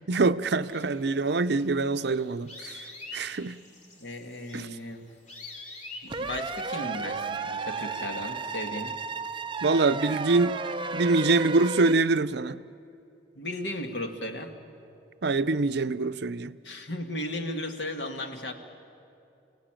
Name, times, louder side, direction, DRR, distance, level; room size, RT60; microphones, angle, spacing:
voice 1, 0.1-2.8 3.1-3.6 4.5-4.7 9.6-10.6 10.9-12.6 15.2-16.5, right 3 dB, 65° right, 0.6 m, -25 dB
sound 1, 0.6-6.2, left 2 dB, 40° left, 3.0 m, -46 dB
voice 2, 4.0-5.2 6.0-8.9 13.3-14.5 16.6-18.5, left 1 dB, 70° left, 2.0 m, -35 dB
sound 2, 6.1-11.9, right 4 dB, 30° right, 0.7 m, -33 dB
29.5 x 17.5 x 9.0 m
head